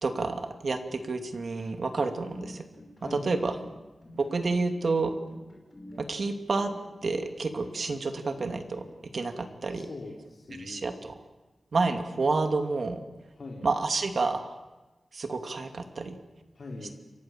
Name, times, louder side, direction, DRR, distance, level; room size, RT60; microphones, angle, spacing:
voice 1, 0.0-2.6 3.0-3.6 4.2-5.1 6.0-6.7 7.0-8.8 9.1-9.9 10.6-11.1 11.7-13.0 13.6-14.5 15.1-16.2, right 3 dB, 50° right, 6 dB, 2.6 m, -29 dB
sound 1, 2.1-8.9, left 1 dB, 15° left, 6.2 m, -49 dB
voice 2, 3.0-3.3 9.7-11.0 13.3-13.7 16.5-16.9, left 2 dB, 50° left, -1 dB, 4.0 m, -42 dB
29.0 x 24.5 x 7.5 m, 1.1 s
wide cardioid pair, 160°, 0 cm